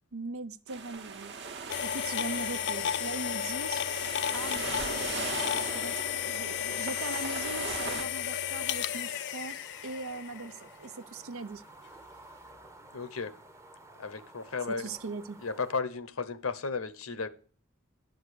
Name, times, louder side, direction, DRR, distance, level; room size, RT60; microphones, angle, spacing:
voice 1, 0.1-1.3 1.8-3.8 4.3-11.6 14.7-15.4, right 3 dB, 75° right, 0.7 m, -40 dB
sound 1, 0.7-8.0, right 4 dB, 55° right, 1.2 m, -39 dB
sound 2, 1.7-10.6, left 10 dB, 55° left, 0.5 m, -33 dB
sound 3, 4.2-15.7, right 1 dB, 15° right, 0.8 m, -53 dB
voice 2, 12.9-13.3 14.0-15.0 15.4-17.3, left 4 dB, 75° left, 0.9 m, -34 dB
11.0 x 6.7 x 6.6 m
head